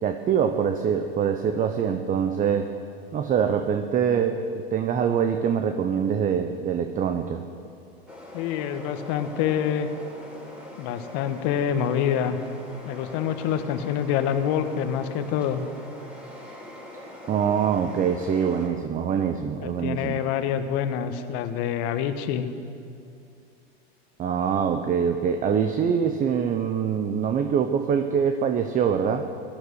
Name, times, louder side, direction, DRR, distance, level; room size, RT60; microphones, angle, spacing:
voice 1, 0.0-2.7 3.1-7.4 17.3-20.2 24.2-29.3, right 7 dB, 25° right, 7 dB, 0.8 m, -24 dB
sound 1, 8.1-18.7, left 1 dB, 5° right, 4.5 m, -43 dB
voice 2, 8.3-9.9 10.8-12.4 12.8-15.6 19.6-22.5, left 9 dB, 50° left, 8 dB, 1.3 m, -26 dB
16.0 x 12.0 x 6.4 m, 2.5 s
hypercardioid pair, 110°, 31 cm